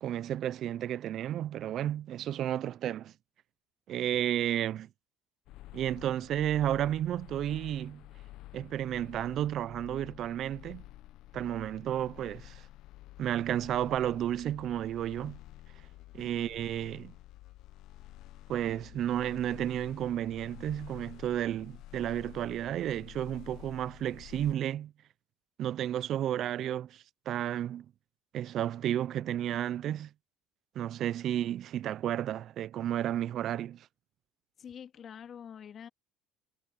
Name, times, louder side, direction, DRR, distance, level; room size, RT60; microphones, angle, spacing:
voice 1, 0.0-3.1 3.9-4.9 5.7-8.0 8.5-10.8 11.3-12.6 13.2-15.4 16.1-17.1 18.5-24.9 25.6-27.9 28.3-30.1 30.8-33.9, right 11 dB, 60° right, 0.6 m, -32 dB
sound 1, 5.5-24.5, left 15 dB, 70° left, 1.2 m, -50 dB
voice 2, 34.6-35.9, left 8 dB, 45° left, 2.9 m, -47 dB
supercardioid pair, 75°, 0 cm